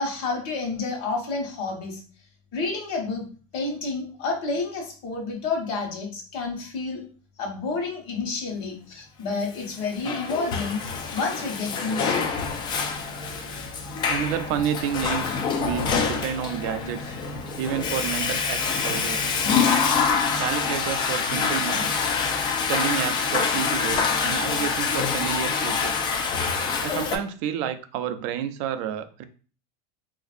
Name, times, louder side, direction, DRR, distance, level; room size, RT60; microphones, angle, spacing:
voice 1, 0.0-2.0 2.5-3.2 3.5-7.0 7.4-10.8 11.1-12.2, left 3 dB, 50° left, 0 dB, 1.2 m, -29 dB
Water / Toilet flush, 9.7-27.2, left 5 dB, 25° left, 0.4 m, -26 dB
voice 2, 14.1-17.1 17.6-19.3 20.4-22.2 22.7-26.1 26.8-29.2, right 9 dB, 50° right, 11 dB, 0.4 m, -30 dB
4.0 x 2.5 x 2.5 m, 0.39 s
supercardioid pair, 160°, 19 cm